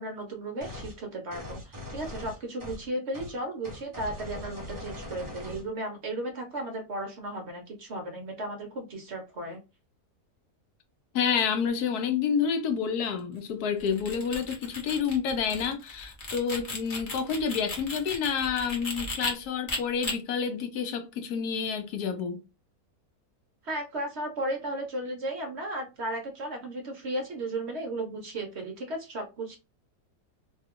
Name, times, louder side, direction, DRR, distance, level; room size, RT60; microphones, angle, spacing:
voice 1, 0.0-9.6 23.6-29.6, right 1 dB, 55° right, 0.8 m, -35 dB
sound 1, 0.6-1.0 1.3-2.9 3.1-3.3 3.6-5.7, left 1 dB, 20° right, 0.5 m, -40 dB
voice 2, 11.1-22.4, left 6 dB, 75° left, 1.2 m, -29 dB
sound 2, 13.8-19.3 19.7-20.1, left 3 dB, 40° left, 0.8 m, -36 dB
2.9 x 2.3 x 3.5 m
omnidirectional pair, 1.7 m